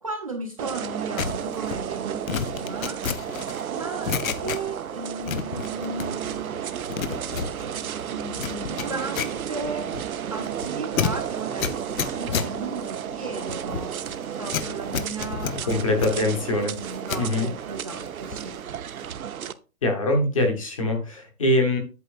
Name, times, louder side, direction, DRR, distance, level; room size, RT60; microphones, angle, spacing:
voice 1, 0.0-3.0 3.7-6.9 7.3-14.0 14.3-16.3 16.7-18.6, right 3 dB, 25° right, 0 dB, 0.7 m, -36 dB
sound 1, 0.6-19.5, right 9 dB, 75° right, 0.8 m, -33 dB
sound 2, 1.2-4.9 5.2-6.4 6.7-17.3 17.7-18.6 18.8-19.1, left 7 dB, 65° left, 0.8 m, -32 dB
voice 2, 15.7-16.7 17.2-17.5 19.8-21.8, left 1 dB, 25° left, 3 dB, 1.1 m, -23 dB
8.3 x 7.7 x 2.4 m, 0.33 s
hypercardioid pair, 180°, 44 cm